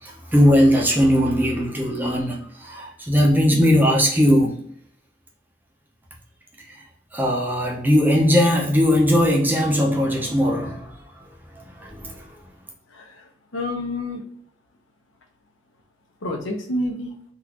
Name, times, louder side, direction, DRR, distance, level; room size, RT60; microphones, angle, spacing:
voice 1, 0.0-4.6 6.7-6.8 7.1-11.2 11.5-12.2, equal, 10° right, -1 dB, 0.7 m, -19 dB
voice 2, 12.9-14.2 16.2-17.1, left 1 dB, 85° left, 2 dB, 0.9 m, -29 dB
3.8 x 2.6 x 2.9 m, 0.64 s
head